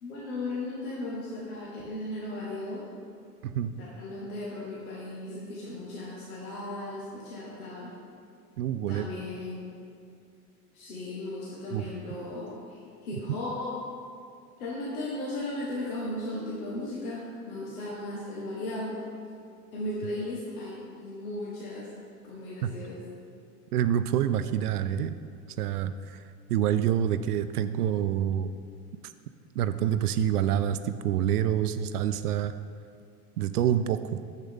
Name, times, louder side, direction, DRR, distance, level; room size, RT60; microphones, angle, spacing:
voice 1, 0.0-2.9 3.8-7.9 8.9-9.7 10.7-13.8 14.6-19.0 19.7-21.9 22.2-23.0, left 1 dB, 65° left, -5 dB, 1.7 m, -36 dB
voice 2, 3.4-3.7 8.6-9.1 11.7-11.8 22.6-22.7 23.7-25.1 25.6-26.2 26.5-28.5 29.0-29.1 29.6-32.5 33.4-34.2, right 10 dB, 80° right, 11 dB, 0.5 m, -27 dB
9.2 x 7.5 x 3.8 m, 2.3 s
hypercardioid pair, 85°, 45 cm